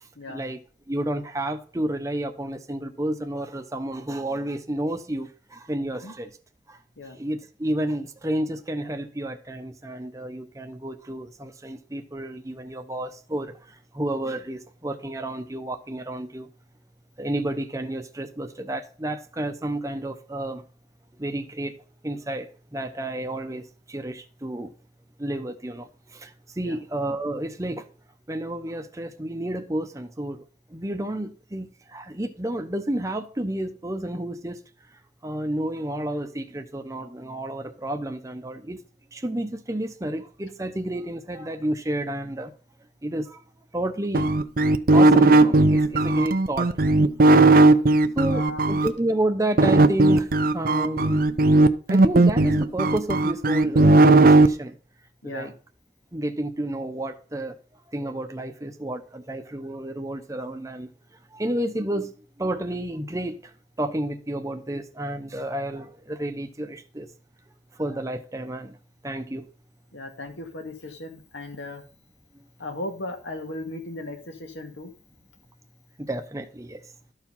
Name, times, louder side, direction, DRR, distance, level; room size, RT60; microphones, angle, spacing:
voice 1, 0.3-0.6 0.9-6.3 6.7-6.8 7.1-13.5 13.9-16.5 17.2-20.6 21.2-24.7 25.2-27.8 28.3-30.4 30.7-34.6 35.2-38.8 39.1-42.5 43.0-43.4 43.7-44.3 44.9-46.7 47.7-47.8 48.2-51.2 51.9-54.8 55.2-55.5 56.1-57.5 57.9-60.9 61.3-62.1 62.4-63.4 63.8-67.1 67.8-68.8 69.0-69.5 76.0-76.8, right 1 dB, 15° right, 0.8 m, -30 dB
sound 1, 44.1-48.9 49.6-54.5, right 2 dB, 50° right, 0.6 m, -16 dB
voice 2, 47.3-47.6 48.3-48.6 55.2-55.5 69.9-71.8 72.6-74.9, left 2 dB, 80° left, 2.0 m, -36 dB
13.0 x 4.7 x 5.5 m
head